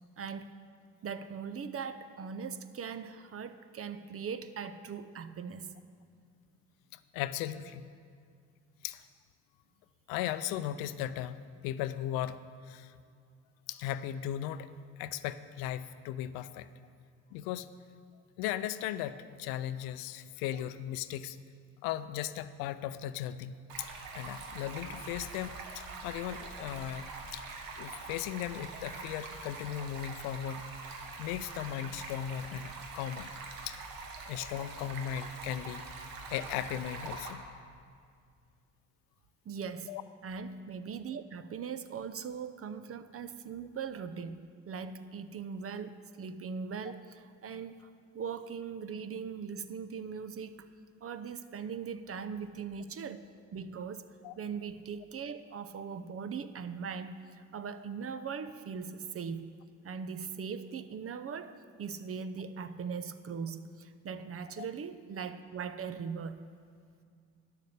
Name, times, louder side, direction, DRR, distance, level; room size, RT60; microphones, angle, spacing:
voice 1, 0.2-0.5 1.0-5.8 39.4-39.9 40.2-44.4 44.7-47.9 48.1-50.7 51.0-53.3 53.5-54.1 54.4-59.4 59.8-66.4, right 6 dB, 40° right, 12 dB, 0.7 m, -40 dB
voice 2, 6.9-7.8 8.8-9.0 10.1-12.4 12.6-13.0 13.7-14.7 15.0-16.7 17.3-17.7 18.4-21.4 21.8-27.1 27.3-27.4 27.8-30.6 31.2-33.3 33.7-33.8 34.3-37.4 39.9-40.0 54.2-54.3 64.6-64.7, left 11 dB, 80° left, 14 dB, 0.5 m, -37 dB
Stream, 23.7-37.3, right 3 dB, 70° right, 1.3 m, -44 dB
10.0 x 6.6 x 6.6 m, 2.2 s
hypercardioid pair, 55°, 35 cm